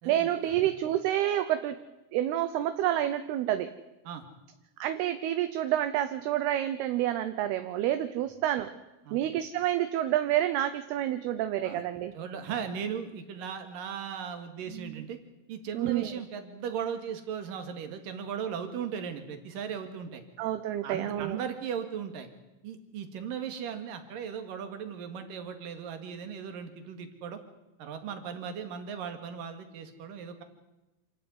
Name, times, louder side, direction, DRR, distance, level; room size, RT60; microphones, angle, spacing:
voice 1, 0.1-1.8 2.1-3.7 4.8-8.7 9.1-12.1 14.7-15.0 15.7-16.1 20.4-21.4, right 12 dB, 75° right, 10 dB, 2.6 m, -28 dB
voice 2, 12.1-15.2 15.5-20.2 20.8-22.3 22.6-27.4 27.8-30.4, right 7 dB, 55° right, 7 dB, 3.3 m, -37 dB
27.0 x 12.5 x 9.7 m, 1.0 s
omnidirectional pair, 5.1 m